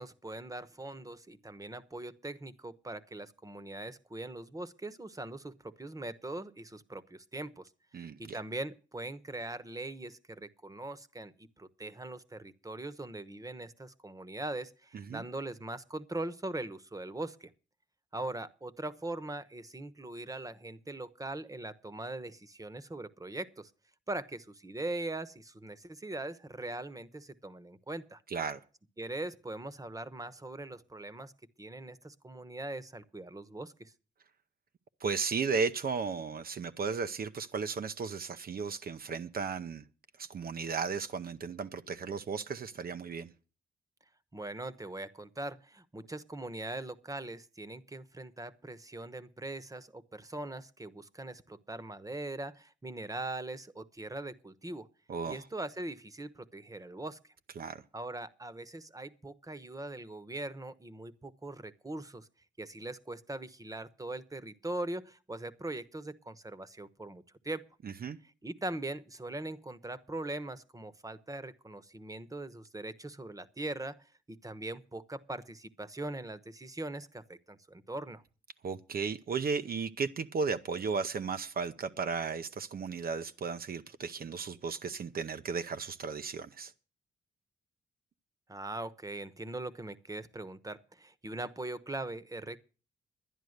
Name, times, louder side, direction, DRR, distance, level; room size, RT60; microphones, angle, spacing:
voice 1, 0.0-17.5 18.1-23.7 24.1-28.2 29.0-31.3 31.6-33.9 44.3-54.9 55.3-57.2 57.9-62.3 62.6-67.6 68.4-78.2 88.5-92.6, right 2 dB, 20° right, 1.1 m, -41 dB
voice 2, 7.9-8.4 14.9-15.2 28.3-28.6 35.0-39.8 40.2-43.3 55.1-55.4 57.6-57.8 67.8-68.2 78.6-86.7, right 5 dB, 55° right, 0.7 m, -35 dB
11.0 x 10.5 x 6.5 m
cardioid pair, 70°, 18 cm